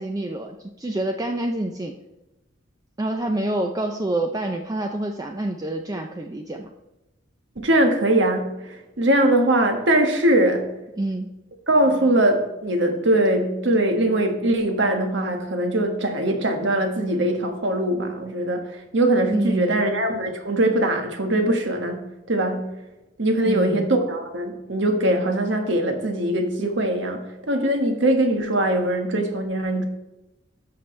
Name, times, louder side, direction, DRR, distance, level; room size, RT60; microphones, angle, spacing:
voice 1, 0.0-1.9 3.0-6.7 11.0-11.3 19.3-19.8 23.5-23.9, right 1 dB, 20° right, 0.4 m, -27 dB
voice 2, 7.6-10.7 11.7-22.7 23.2-29.8, right 1 dB, 70° right, 1.4 m, -21 dB
12.5 x 6.0 x 3.2 m
head